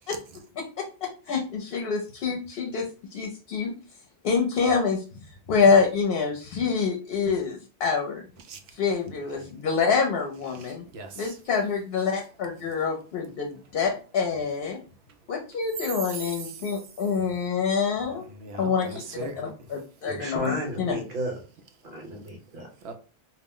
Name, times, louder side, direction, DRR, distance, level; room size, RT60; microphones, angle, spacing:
voice 1, 0.8-3.7 4.2-8.2 8.7-10.8 11.2-14.8 15.3-18.3 18.6-21.0, left 5 dB, 70° left, 1 dB, 0.8 m, -26 dB
voice 2, 8.4-8.8 10.5-11.4 16.1-17.0 18.2-19.7 22.8-22.9, right 3 dB, 80° right, 6 dB, 0.8 m, -40 dB
voice 3, 20.0-21.4 21.9-22.7, right 1 dB, 55° right, 1 dB, 1.1 m, -33 dB
2.4 x 2.0 x 3.6 m, 0.36 s
omnidirectional pair, 1.1 m